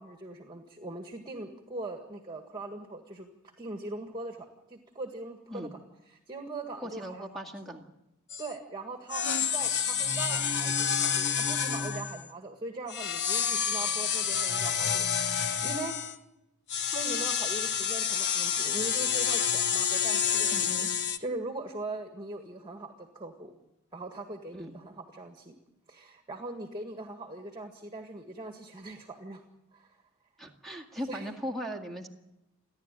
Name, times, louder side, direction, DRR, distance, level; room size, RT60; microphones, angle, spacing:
voice 1, 0.0-5.8 6.1-7.3 8.4-16.2 16.9-23.5 23.9-25.6 25.9-29.4 29.7-30.0 31.1-31.3, right 2 dB, 20° right, 4 dB, 1.8 m, -41 dB
voice 2, 6.8-7.8 20.5-20.9 24.6-24.7 30.4-32.1, equal, ahead, 3 dB, 2.0 m, -38 dB
sound 1, 8.3-8.5 9.1-12.3 12.9-16.2 16.7-21.2, left 7 dB, 50° left, 1.1 m, -29 dB
29.5 x 11.5 x 9.1 m, 0.90 s
head